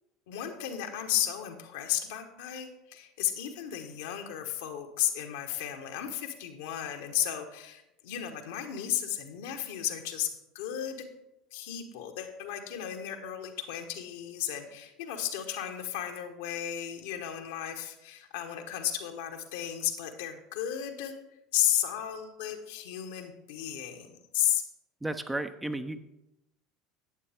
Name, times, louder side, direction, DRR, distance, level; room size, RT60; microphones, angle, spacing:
voice 1, 0.3-11.0 11.5-21.1 21.5-24.6, left 11 dB, 65° left, 5 dB, 1.2 m, -34 dB
voice 2, 25.0-26.0, right 2 dB, 10° right, 9 dB, 0.7 m, -33 dB
11.0 x 8.6 x 3.5 m, 0.91 s
figure-of-eight pair, 75°, 0 cm